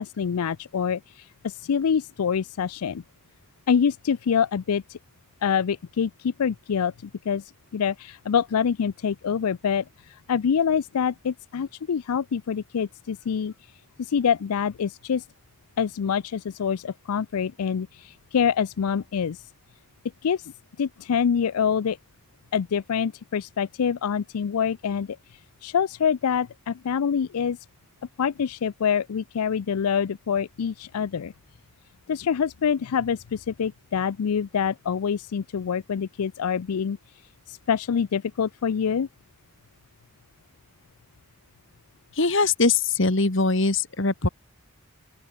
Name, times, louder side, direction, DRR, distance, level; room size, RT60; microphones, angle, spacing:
voice 1, 0.0-3.0 3.7-5.0 5.4-6.9 7.3-7.4 7.7-13.5 14.0-15.2 15.8-19.4 20.2-20.5 20.8-22.0 22.5-25.2 25.6-27.6 28.2-31.3 32.1-37.0 37.5-39.1, left 7 dB, 85° left, 0.4 m, -26 dB
voice 2, 42.1-44.3, left 3 dB, 55° left, 1.7 m, -22 dB
open air
head